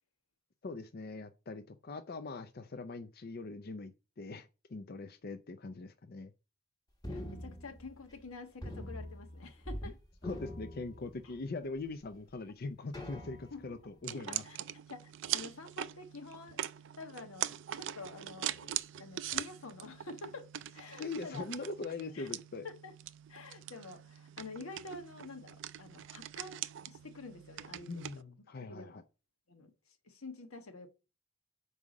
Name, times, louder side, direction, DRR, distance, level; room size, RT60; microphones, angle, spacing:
voice 1, 0.6-6.3 10.2-14.4 21.0-22.6 27.9-29.0, left 3 dB, 45° left, 0.5 m, -42 dB
sound 1, 7.0-8.3 8.6-9.9 10.2-11.5 12.1-12.2 12.9-13.8, left 1 dB, 20° left, 1.4 m, -44 dB
voice 2, 7.1-10.0 11.2-11.3 13.5-13.8 14.1-14.6 14.9-16.6 17.0-20.5 20.7-21.5 22.1-22.3 22.6-22.9 23.3-27.9 28.5-29.0 29.5-29.7 30.0-30.9, left 3 dB, 90° left, 1.4 m, -48 dB
sound 2, 14.0-28.2, right 12 dB, 60° right, 0.4 m, -42 dB
5.5 x 4.8 x 6.4 m
head